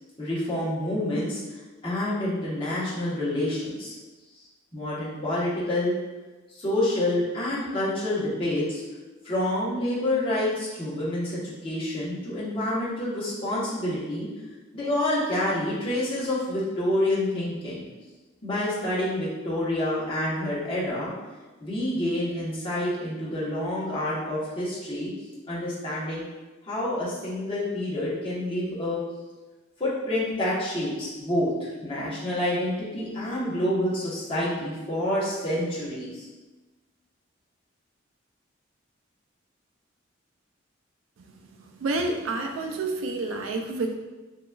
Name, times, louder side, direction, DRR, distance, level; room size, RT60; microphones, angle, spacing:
voice 1, 0.2-1.4 1.8-3.9 4.7-5.9 6.6-8.8 9.2-14.3 14.7-17.8 18.4-21.1 21.6-25.1 25.5-26.2 26.6-29.0 29.8-36.3, left 1 dB, 25° left, -9 dB, 0.9 m, -28 dB
voice 2, 41.8-43.9, right 2 dB, 75° right, 3 dB, 0.3 m, -28 dB
3.5 x 2.9 x 2.2 m, 1.2 s
head